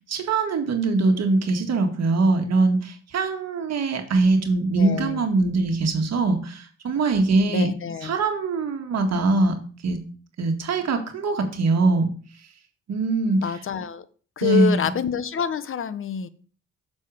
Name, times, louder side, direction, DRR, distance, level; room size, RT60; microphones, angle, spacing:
voice 1, 0.1-7.7 8.0-9.6 9.8-10.0 10.4-12.1 12.9-13.4 14.4-14.9, right 3 dB, 60° right, 5 dB, 1.9 m, -22 dB
voice 2, 4.7-5.2 7.5-8.1 13.4-14.0 14.4-16.3, left 7 dB, 45° left, 14 dB, 0.9 m, -27 dB
7.4 x 6.4 x 5.0 m, 0.41 s
cardioid pair, 90°, 30 cm